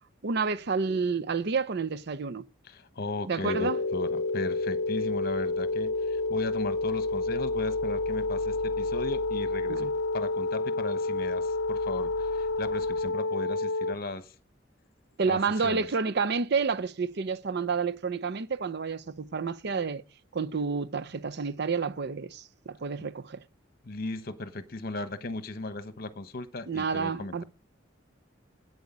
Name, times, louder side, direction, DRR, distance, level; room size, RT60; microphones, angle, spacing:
voice 1, 0.2-2.4 3.3-3.8 9.7-9.9 15.2-20.0 20.3-23.4 26.7-27.4, right 5 dB, 60° right, 0.6 m, -29 dB
voice 2, 2.6-9.9 10.1-14.3 15.3-15.9 23.8-27.4, left 2 dB, 50° left, 1.1 m, -37 dB
sound 1, 3.4-13.9, left 2 dB, 65° left, 0.6 m, -29 dB
8.5 x 7.9 x 8.5 m
head